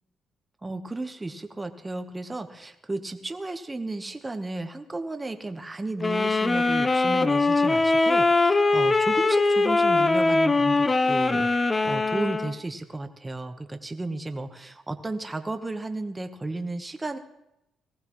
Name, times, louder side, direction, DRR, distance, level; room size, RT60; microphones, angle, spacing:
voice 1, 0.6-11.5 11.8-17.2, right 2 dB, 20° right, 7 dB, 1.1 m, -33 dB
sound 1, 6.0-12.6, left 3 dB, 25° left, 0.6 m, -22 dB
19.0 x 15.0 x 3.1 m, 0.87 s
cardioid pair, 90°, 0 cm